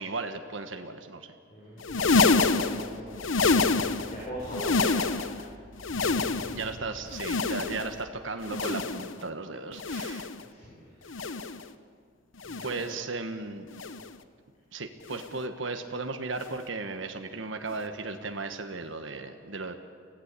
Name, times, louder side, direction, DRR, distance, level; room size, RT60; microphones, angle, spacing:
voice 1, 0.0-1.3 6.5-10.3 12.6-13.7 14.7-19.7, right 3 dB, 75° right, 6 dB, 1.4 m, -35 dB
voice 2, 1.5-5.4 10.4-11.1 12.4-13.0, equal, 35° left, -5 dB, 5.1 m, -41 dB
sound 1, 1.8-4.2 4.5-5.4 5.8-6.7 7.1-8.0 8.4-9.2 9.7-10.4 11.1-11.6 12.4-12.9 13.7-14.2 15.1-15.4 16.4-16.6 17.7-17.8, left 4 dB, 85° left, 0.9 m, -27 dB
sound 2, 1.9-7.9, equal, 55° right, 2.5 m, -48 dB
24.5 x 15.5 x 8.4 m, 2.2 s
head